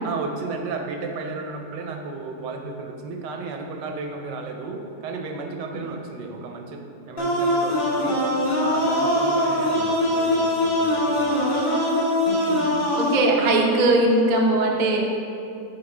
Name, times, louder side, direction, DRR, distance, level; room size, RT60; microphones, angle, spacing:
voice 1, 0.0-8.2 8.6-11.3, right 3 dB, 85° right, 4 dB, 1.3 m, -33 dB
sound 1, 7.2-13.2, left 1 dB, 40° left, 1.0 m, -22 dB
voice 2, 12.3-12.7 12.9-15.1, right 2 dB, 55° right, -1 dB, 0.5 m, -20 dB
8.5 x 4.5 x 3.2 m, 2.6 s
omnidirectional pair, 1.8 m